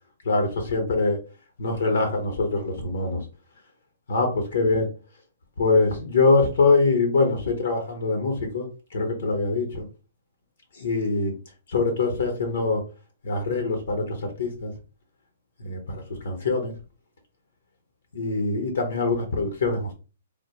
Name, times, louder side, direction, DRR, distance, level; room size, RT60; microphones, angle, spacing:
voice 1, 0.2-1.2 1.6-3.2 4.1-4.9 5.6-8.7 8.9-9.9 10.7-11.3 11.7-12.8 13.2-14.7 15.6-16.7 18.1-19.9, left 3 dB, 75° left, 4 dB, 0.8 m, -23 dB
3.4 x 2.2 x 2.8 m, 0.33 s
hypercardioid pair, 135°, 0 cm